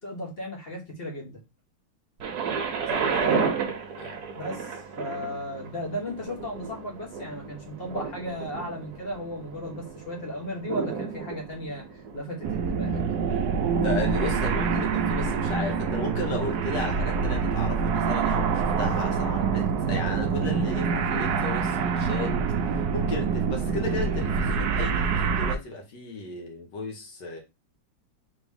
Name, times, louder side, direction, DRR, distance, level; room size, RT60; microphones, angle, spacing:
voice 1, 0.0-1.4 3.2-3.5 4.4-13.0, equal, 35° left, 1.2 m, -35 dB
Thunder, 2.2-14.0 14.8-14.9, right 6 dB, 60° right, 1.3 m, -33 dB
voice 2, 2.9-3.4 4.0-4.2 13.8-22.4 22.6-27.4, left 2 dB, 60° left, 1.8 m, -34 dB
sound 1, 12.4-25.6, right 6 dB, 85° right, 0.8 m, -26 dB
3.9 x 3.2 x 3.5 m
omnidirectional pair, 2.2 m